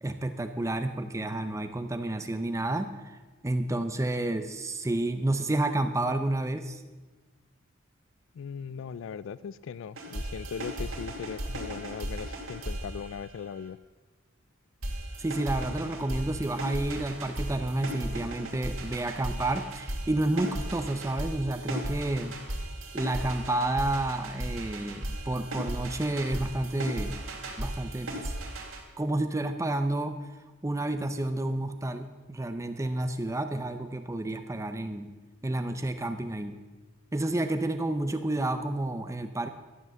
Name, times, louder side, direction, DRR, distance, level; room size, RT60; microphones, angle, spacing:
voice 1, 0.0-6.8 15.2-22.3 22.9-27.2 27.6-28.3 29.0-35.1 35.4-36.6 37.1-39.5, right 1 dB, 15° right, 8 dB, 0.5 m, -30 dB
voice 2, 8.3-13.8, left 7 dB, 65° left, 18 dB, 0.3 m, -39 dB
sound 1, 10.0-13.7 14.8-28.8, right 1 dB, 75° right, 2.8 m, -36 dB
12.5 x 8.0 x 7.4 m, 1.3 s
head